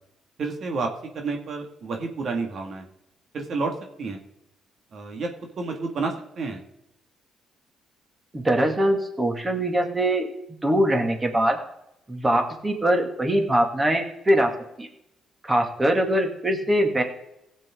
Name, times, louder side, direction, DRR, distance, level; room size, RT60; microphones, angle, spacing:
voice 1, 0.4-0.9 1.1-2.9 3.3-3.7 4.0-4.2 4.9-5.3 5.6-6.6, right 4 dB, 60° right, 2 dB, 2.2 m, -29 dB
voice 2, 8.3-10.3 10.6-11.6 12.1-14.5 14.8-14.9 15.4-17.0, right 1 dB, 20° right, 3 dB, 2.4 m, -22 dB
16.5 x 7.5 x 3.8 m, 0.81 s
cardioid pair, 90°, 0 cm